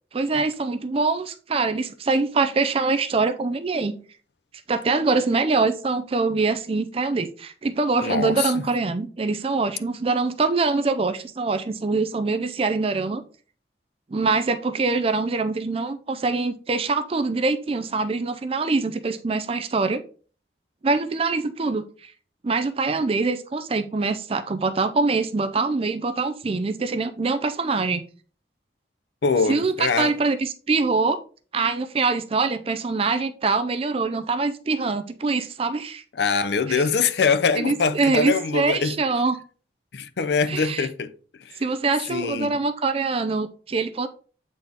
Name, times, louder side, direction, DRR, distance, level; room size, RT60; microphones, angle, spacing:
voice 1, 0.1-3.9 4.7-13.2 14.1-20.0 20.8-22.1 22.4-28.0 29.5-31.2 31.5-36.0 36.7-36.8 37.6-39.4 40.5-40.9 41.6-44.1, right 3 dB, 30° right, 0.4 m, -24 dB
voice 2, 8.0-8.6 29.2-30.1 36.2-39.0 39.9-41.1 41.4-41.6 42.1-42.6, left 5 dB, 70° left, 0.6 m, -23 dB
8.2 x 4.1 x 3.5 m
head